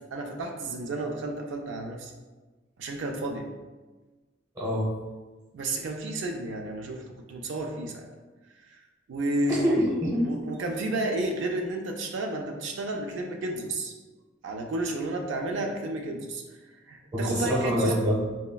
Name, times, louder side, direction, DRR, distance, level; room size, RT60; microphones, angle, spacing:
voice 1, 0.1-2.1 2.8-3.5 5.5-8.1 9.1-9.7 10.3-13.9 14.4-16.4 16.9-17.9, right 2 dB, 75° right, 2 dB, 0.4 m, -31 dB
voice 2, 4.5-4.9 9.5-10.3 17.1-18.2, equal, 20° right, -5 dB, 0.8 m, -25 dB
3.9 x 2.1 x 2.2 m, 1.2 s
head